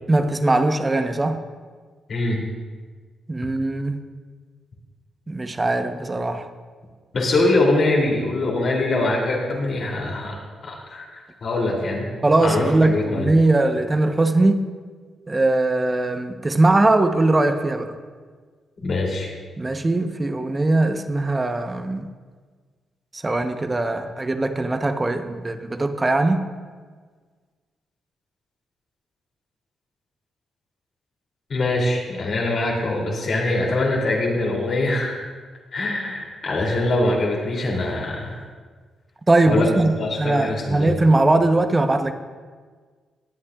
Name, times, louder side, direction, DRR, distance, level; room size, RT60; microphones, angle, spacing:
voice 1, 0.1-1.4 3.3-4.0 5.3-6.5 12.2-14.6 15.3-17.9 19.6-22.1 23.1-26.4 39.3-42.1, right 2 dB, 25° right, 7 dB, 0.9 m, -20 dB
voice 2, 2.1-2.4 7.1-10.3 10.6-12.1 12.4-13.3 18.8-19.3 31.5-35.2 35.7-38.4 39.5-41.0, left 2 dB, 60° left, -2 dB, 2.9 m, -23 dB
19.5 x 8.4 x 2.4 m, 1.5 s
supercardioid pair, 55°, 0 cm